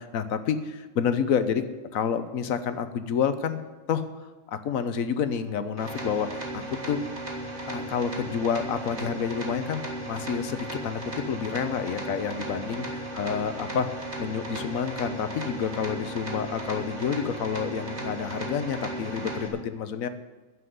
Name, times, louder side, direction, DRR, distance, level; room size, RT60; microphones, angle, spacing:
voice 1, 0.0-1.6 1.9-3.6 3.9-7.0 7.7-20.1, left 7 dB, 85° left, 10 dB, 1.3 m, -29 dB
sound 1, 5.8-19.5, right 1 dB, 55° right, 2.3 m, -36 dB
11.5 x 7.7 x 9.5 m, 1.2 s
omnidirectional pair, 1.4 m